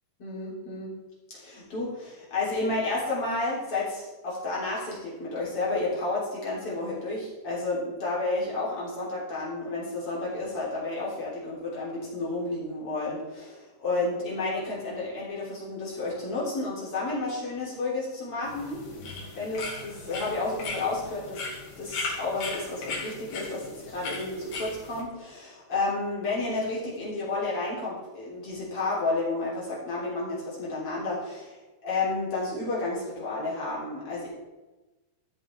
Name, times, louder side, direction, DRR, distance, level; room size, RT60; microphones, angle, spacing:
voice 1, 0.2-0.9 1.3-18.8 19.3-21.4 21.8-34.3, left 2 dB, 35° left, -6 dB, 3.7 m, -31 dB
sound 1, 18.4-25.0, left 3 dB, 70° left, 4.1 m, -37 dB
14.0 x 7.4 x 3.4 m, 1.1 s
omnidirectional pair, 4.7 m